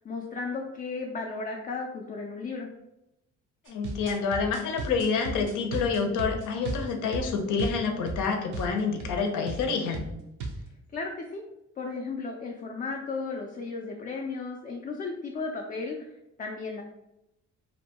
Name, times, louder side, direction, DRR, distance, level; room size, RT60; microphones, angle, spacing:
voice 1, 0.0-2.7 10.9-11.4 11.8-16.1 16.4-16.8, left 4 dB, 30° left, 0 dB, 0.3 m, -34 dB
voice 2, 3.7-10.1, left 5 dB, 80° left, 3 dB, 0.6 m, -28 dB
sound 1, 3.7-8.3 8.5-8.7 9.0-9.2 9.5-9.7 9.9-10.6, right 2 dB, 80° right, 0.6 m, -35 dB
2.6 x 2.2 x 2.8 m, 0.88 s
cardioid pair, 90°, 30 cm